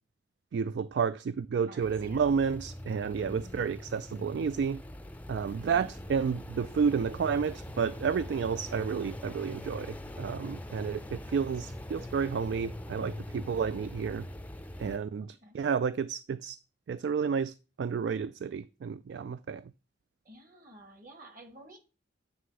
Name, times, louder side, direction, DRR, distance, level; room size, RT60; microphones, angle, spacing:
voice 1, 0.5-4.8 5.3-14.2 14.8-16.6 16.9-19.6, right 6 dB, 65° right, 0.3 m, -31 dB
voice 2, 1.6-2.5 3.2-3.7 5.7-6.1 15.2-15.6 20.3-21.8, right 1 dB, 50° right, 2.1 m, -52 dB
sound 1, 1.8-15.0, left 1 dB, 10° left, 0.5 m, -43 dB
9.3 x 3.3 x 6.3 m
head